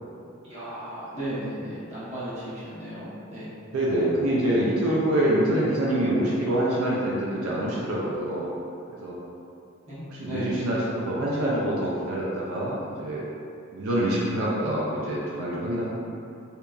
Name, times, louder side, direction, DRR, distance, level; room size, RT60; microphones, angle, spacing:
voice 1, 0.4-3.5 9.9-10.5, right 1 dB, 30° right, -12 dB, 0.9 m, -35 dB
voice 2, 3.7-8.5 9.0-9.2 10.1-13.2 13.7-15.9, right 1 dB, 80° right, -6 dB, 0.4 m, -25 dB
2.9 x 2.2 x 2.3 m, 2.6 s
head